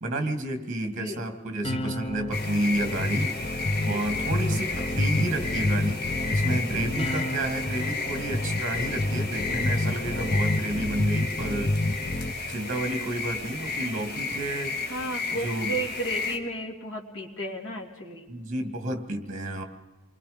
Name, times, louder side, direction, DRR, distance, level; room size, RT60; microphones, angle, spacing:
voice 1, 0.0-11.7 12.5-14.8 15.3-15.8 18.3-19.6, right 1 dB, 35° right, 6 dB, 2.5 m, -31 dB
voice 2, 0.8-1.2 3.8-4.0 6.5-6.9 14.8-18.3, right 1 dB, 80° left, -1 dB, 2.8 m, -34 dB
sound 1, 1.6-12.3, left 1 dB, 25° left, 0.7 m, -29 dB
sound 2, 2.3-16.4, left 4 dB, 45° left, 2.3 m, -33 dB
28.0 x 21.5 x 5.2 m, 1.2 s
head